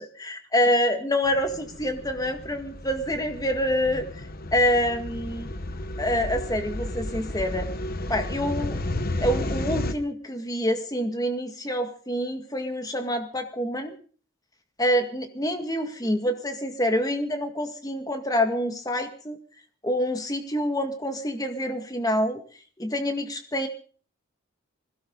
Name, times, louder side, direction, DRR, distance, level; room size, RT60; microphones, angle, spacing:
voice 1, 0.0-4.1 4.5-5.5 6.0-7.7 8.1-8.8 9.2-13.9 14.8-19.4 19.8-22.4 22.8-23.7, equal, 15° left, 7 dB, 1.9 m, -26 dB
sound 1, 1.2-9.9, left 1 dB, 40° left, 1.2 m, -33 dB
20.5 x 16.5 x 4.0 m, 0.43 s
head